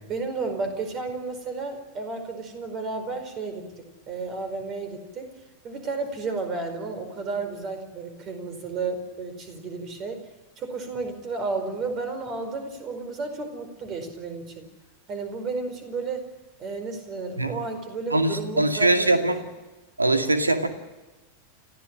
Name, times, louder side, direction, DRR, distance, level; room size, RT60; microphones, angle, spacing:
voice 1, 0.1-5.3 5.6-10.3 10.6-14.7 15.1-16.3 16.6-19.1, right 4 dB, 30° right, 8 dB, 4.9 m, -32 dB
voice 2, 18.1-19.4 20.0-20.7, right 2 dB, 80° right, 6 dB, 2.3 m, -22 dB
29.5 x 15.0 x 7.6 m, 1.2 s
figure-of-eight pair, 90°, 0 cm